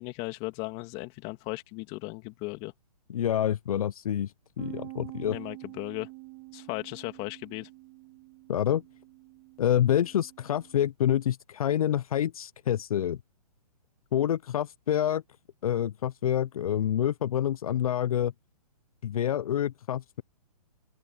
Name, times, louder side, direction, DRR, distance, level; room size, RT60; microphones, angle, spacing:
voice 1, 0.0-2.7 5.3-6.1 6.5-7.7, left 25 dB, 30° left, 2.9 m, -36 dB
voice 2, 3.1-5.4 8.5-8.8 9.6-13.2 14.1-15.2 15.6-18.3 19.0-20.2, left 10 dB, 60° left, 0.7 m, -27 dB
Bass guitar, 4.6-10.8, right 25 dB, 30° right, 2.6 m, -47 dB
open air
hypercardioid pair, 145°, 20 cm